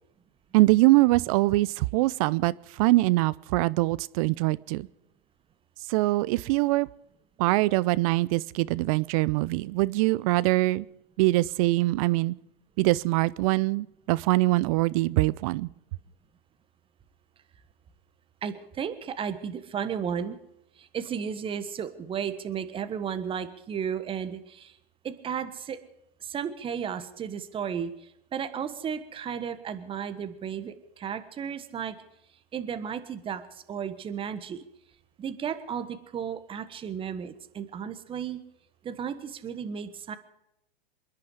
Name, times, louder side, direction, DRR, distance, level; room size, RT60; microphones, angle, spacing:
voice 1, 0.5-4.9 5.9-6.9 7.4-10.9 11.2-12.3 12.8-15.7, right 20 dB, 35° right, 20 dB, 0.6 m, -23 dB
voice 2, 18.4-20.4 20.8-24.8 25.0-25.8 26.2-31.9 32.5-34.6 35.2-38.4 38.8-40.2, right 7 dB, 15° right, 11 dB, 1.4 m, -34 dB
27.5 x 10.5 x 4.9 m, 0.82 s
hypercardioid pair, 120°, 30 cm